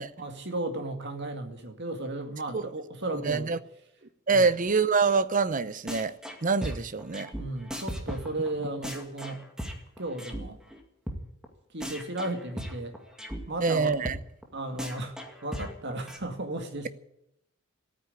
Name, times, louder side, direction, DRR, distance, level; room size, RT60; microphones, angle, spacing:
voice 1, 0.2-3.5 4.3-4.5 7.3-9.4 10.0-10.6 11.7-13.0 13.5-14.0 14.5-15.1 15.4-16.9, right 2 dB, 55° right, 2.3 m, -34 dB
voice 2, 3.2-3.6 4.3-6.1 6.4-7.3 13.6-14.2, right 4 dB, 40° right, 0.7 m, -25 dB
sound 1, 5.9-6.4 6.6-10.4 10.7-10.8 11.1-11.2 11.4-11.5 11.8-13.4 13.7-13.8 14.1-14.2 14.4-14.5 14.8-16.2, equal, 5° right, 2.2 m, -37 dB
14.5 x 9.4 x 9.8 m
head